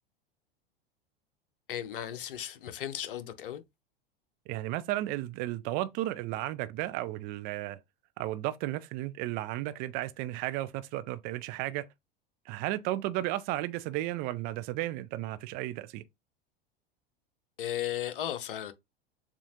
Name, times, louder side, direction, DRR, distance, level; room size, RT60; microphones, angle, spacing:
voice 1, 1.7-3.6 17.6-18.7, left 11 dB, 65° left, 0.7 m, -35 dB
voice 2, 4.5-7.8 8.2-11.9 12.5-16.0, right 15 dB, 30° right, 0.4 m, -34 dB
7.0 x 2.5 x 2.8 m
figure-of-eight pair, 85°, 29 cm